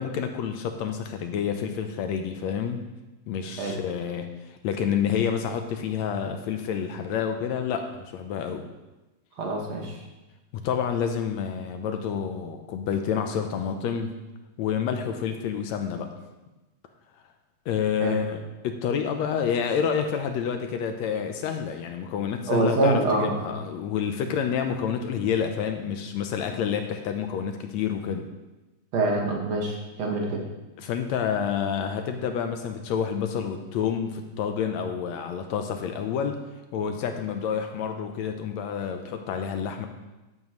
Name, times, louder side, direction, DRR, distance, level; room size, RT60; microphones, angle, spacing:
voice 1, 0.0-2.9 3.3-8.6 10.5-14.1 14.6-16.1 17.7-28.3 30.8-36.4 36.7-39.9, left 7 dB, 75° left, 6 dB, 1.8 m, -28 dB
voice 2, 9.4-10.0 18.0-18.1 22.5-23.5 28.9-30.4, right 2 dB, 60° right, -1 dB, 2.7 m, -25 dB
12.5 x 10.5 x 3.1 m, 1.1 s
omnidirectional pair, 3.4 m